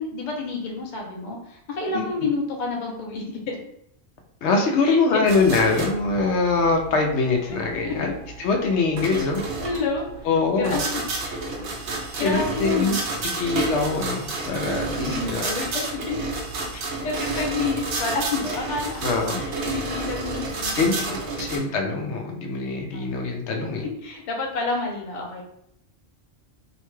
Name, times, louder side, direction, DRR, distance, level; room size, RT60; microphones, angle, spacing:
voice 1, 0.0-3.6 4.8-5.3 7.5-7.6 7.8-7.9 9.6-10.0 10.6-10.8 12.2-13.0 15.0-16.2 16.7-19.1 19.3-20.8 21.1-21.4 22.9-23.2 24.0-25.4, left 3 dB, 50° left, 0 dB, 0.7 m, -29 dB
voice 2, 4.4-8.1 8.4-9.4 10.2-10.8 12.2-13.0 13.3-15.5 19.0-19.4 20.7-23.8, left 4 dB, 90° left, 2 dB, 0.9 m, -23 dB
sound 1, 5.3-21.6, right 3 dB, 85° right, 1.0 m, -31 dB
2.8 x 2.2 x 3.0 m, 0.74 s
omnidirectional pair, 1.1 m